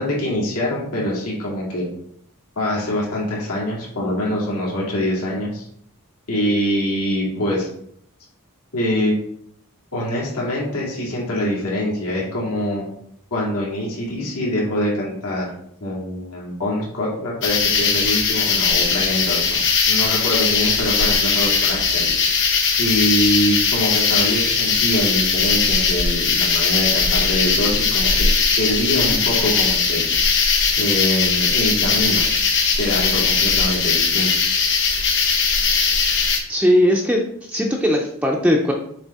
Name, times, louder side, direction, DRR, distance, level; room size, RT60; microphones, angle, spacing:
voice 1, 0.0-1.9 2.6-5.7 6.3-7.7 8.7-9.1 9.9-12.9 13.3-15.5 15.8-22.1 22.8-28.1 28.6-30.0 30.8-32.2 32.8-34.3, left 1 dB, 80° left, -4 dB, 2.2 m, -24 dB
sound 1, 17.4-36.4, left 5 dB, 55° left, 1.1 m, -19 dB
voice 2, 36.5-38.7, equal, 5° right, -1 dB, 0.5 m, -19 dB
7.1 x 3.3 x 4.2 m, 0.67 s
head